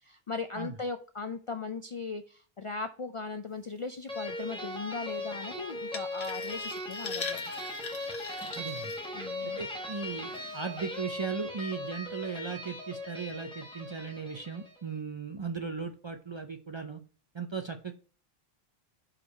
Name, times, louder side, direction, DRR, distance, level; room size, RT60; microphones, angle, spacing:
voice 1, 0.0-7.5 9.1-9.6 10.3-10.6, left 4 dB, 50° left, 7 dB, 0.4 m, -38 dB
sound 1, 4.1-14.8, left 1 dB, 5° left, 1.1 m, -38 dB
sound 2, 5.9-9.6 10.1-10.4 10.9-11.0, left 5 dB, 80° left, 1.1 m, -42 dB
voice 2, 8.6-8.9 9.6-17.0 17.3-17.9, right 5 dB, 40° right, 6 dB, 0.4 m, -37 dB
5.0 x 4.6 x 5.3 m, 0.39 s
omnidirectional pair, 1.0 m